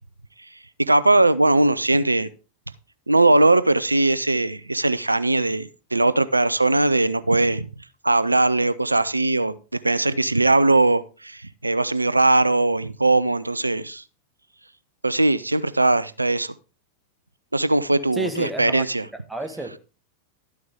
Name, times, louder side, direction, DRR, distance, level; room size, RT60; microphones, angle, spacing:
voice 1, 0.8-2.3 3.1-7.7 8.0-9.6 9.8-14.0 15.0-16.5 17.5-19.1, right 2 dB, 85° right, 0.4 m, -20 dB
voice 2, 18.1-18.8 19.3-19.8, right 2 dB, 5° right, 1.4 m, -30 dB
12.0 x 9.4 x 3.5 m
figure-of-eight pair, 90°, 0 cm